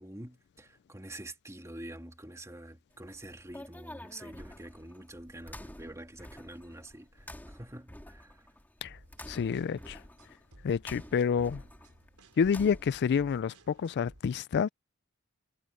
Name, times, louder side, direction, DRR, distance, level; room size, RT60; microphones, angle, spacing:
voice 1, 0.0-8.5, right 1 dB, 15° right, 2.4 m, -46 dB
sound 1, 2.9-13.1, left 1 dB, 10° left, 2.2 m, -49 dB
sound 2, 8.9-14.2, right 1 dB, 85° right, 4.2 m, -58 dB
voice 2, 9.3-10.0 10.6-11.6 12.4-14.7, left 6 dB, 50° left, 0.3 m, -28 dB
head